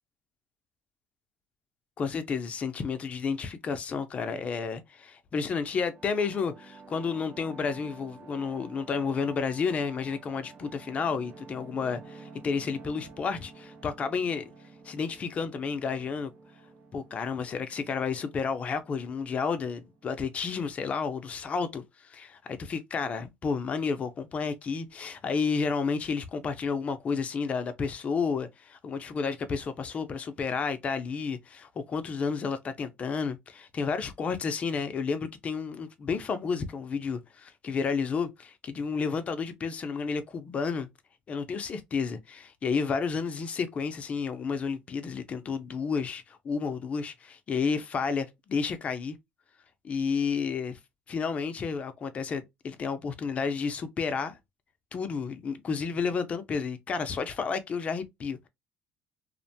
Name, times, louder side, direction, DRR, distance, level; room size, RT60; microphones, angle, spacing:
voice 1, 2.0-14.5 14.8-16.3 16.9-21.8 22.1-40.9 41.3-49.2 49.8-50.8 51.1-54.4 54.9-58.5, left 5 dB, 35° left, 0.5 m, -31 dB
sound 1, 5.4-20.8, right 4 dB, 45° right, 0.6 m, -51 dB
2.4 x 2.1 x 2.6 m
cardioid pair, 105°, 4 cm